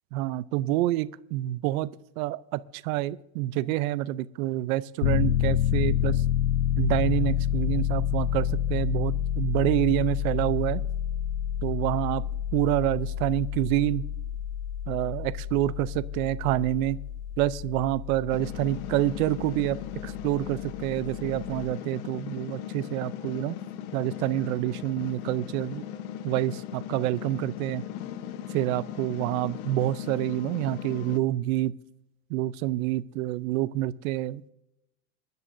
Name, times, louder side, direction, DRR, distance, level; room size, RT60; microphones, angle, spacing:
voice 1, 0.1-1.9 2.2-6.2 6.8-10.8 11.6-12.2 12.5-14.1 14.9-17.0 17.4-19.8 20.0-23.5 23.9-25.8 26.2-27.8 28.5-31.7 32.3-34.5, right 15 dB, 75° right, 15 dB, 0.6 m, -27 dB
Piano, 5.0-21.7, left 10 dB, 65° left, 0.7 m, -29 dB
sound 1, 18.3-31.2, left 10 dB, 85° left, 1.1 m, -38 dB
26.0 x 10.5 x 2.6 m, 0.88 s
cardioid pair, 180°, 42 cm